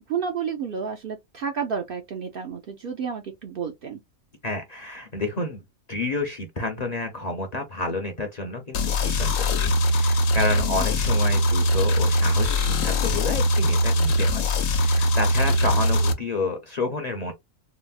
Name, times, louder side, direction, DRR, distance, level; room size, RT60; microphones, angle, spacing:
voice 1, 0.1-4.0 10.5-10.9 15.5-15.8, right 6 dB, 60° right, 0.6 m, -31 dB
voice 2, 4.4-5.6 5.9-17.3, left 2 dB, 40° left, 0.6 m, -30 dB
sound 1, 8.7-16.1, left 1 dB, 80° left, 1.1 m, -21 dB
4.0 x 2.0 x 2.3 m
omnidirectional pair, 1.3 m